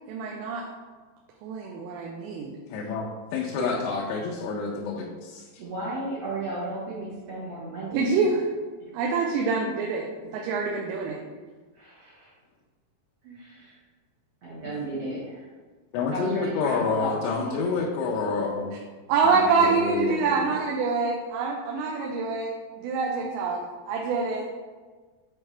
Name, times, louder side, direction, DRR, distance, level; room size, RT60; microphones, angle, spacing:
voice 1, 0.1-0.6 1.4-2.6 3.6-3.7 7.9-8.4 8.9-10.1 10.3-11.2 13.3-13.4 19.1-24.5, right 4 dB, 85° right, -1 dB, 2.9 m, -26 dB
voice 2, 2.7-5.6 15.9-18.7 19.2-20.5, left 4 dB, 85° left, -1 dB, 2.8 m, -29 dB
voice 3, 5.6-8.2 8.8-9.1 11.7-12.3 13.3-13.8 14.4-15.5 16.1-17.6, right 2 dB, 70° right, -9 dB, 1.5 m, -34 dB
8.3 x 4.6 x 3.3 m, 1.4 s
omnidirectional pair, 5.0 m